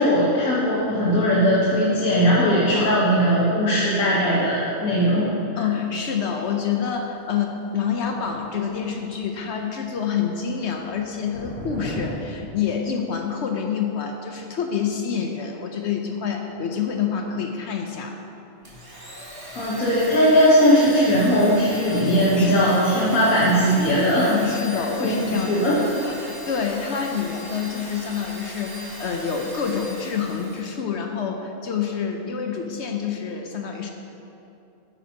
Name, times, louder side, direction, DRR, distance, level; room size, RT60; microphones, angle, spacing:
voice 1, 0.0-5.3 5.5-5.6 19.5-24.3 25.0-25.8, equal, 80° left, -7 dB, 1.6 m, -19 dB
voice 2, 5.6-18.2 22.4-22.9 24.3-25.5 26.0-33.9, left 7 dB, 65° left, 3 dB, 0.8 m, -27 dB
sound 1, 7.9-9.4 9.7-10.1 10.4-12.1, left 1 dB, 70° right, 2.7 m, -36 dB
Domestic sounds home sounds, 18.6-30.7, right 1 dB, 15° right, 1.5 m, -39 dB
9.9 x 8.7 x 2.8 m, 2.9 s
omnidirectional pair, 1.4 m